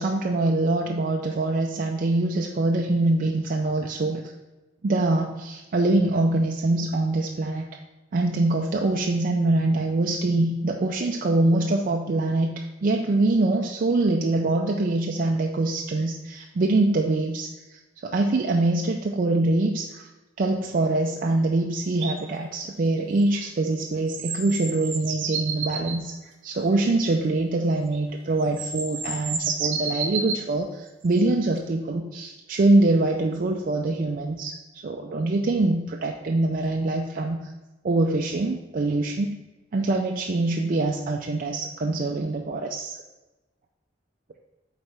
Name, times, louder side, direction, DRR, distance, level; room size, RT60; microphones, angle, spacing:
voice 1, 0.0-4.3 4.8-7.7 8.1-20.1 20.4-37.4 37.8-39.4 39.7-43.0, right 2 dB, 50° right, 2 dB, 0.4 m, -24 dB
sound 1, 22.0-22.2 24.1-26.0 27.9-28.0 28.4-30.4 31.6-31.7, right 5 dB, 90° right, 0.8 m, -30 dB
8.0 x 4.1 x 3.3 m, 1.1 s
head